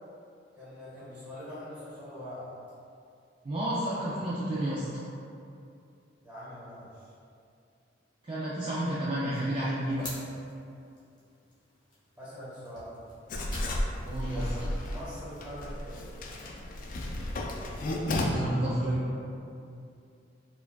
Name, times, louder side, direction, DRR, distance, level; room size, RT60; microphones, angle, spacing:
voice 1, 0.6-2.5 6.2-7.1 12.2-12.9 14.3-16.1, equal, 10° right, -12 dB, 1.3 m, -43 dB
voice 2, 3.4-5.0 8.2-10.1 14.0-14.4 18.3-19.0, right 1 dB, 30° right, -9 dB, 0.4 m, -31 dB
sound 1, 9.3-15.7, left 1 dB, 25° left, 0.8 m, -49 dB
Writing, 13.3-18.2, left 1 dB, 45° left, 0.3 m, -33 dB
4.6 x 2.3 x 2.3 m, 2.5 s
head